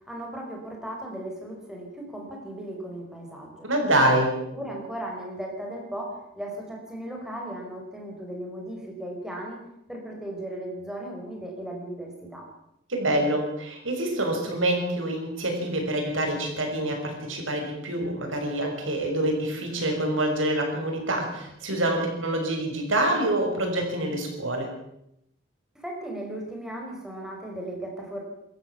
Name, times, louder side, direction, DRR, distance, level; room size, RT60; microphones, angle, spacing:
voice 1, 0.0-3.7 4.5-9.6 9.9-12.4 25.7-28.2, right 1 dB, 5° right, 0 dB, 5.1 m, -36 dB
voice 2, 3.6-4.3 12.9-24.7, right 1 dB, 85° right, 3 dB, 6.0 m, -26 dB
26.5 x 13.5 x 7.2 m, 0.81 s
head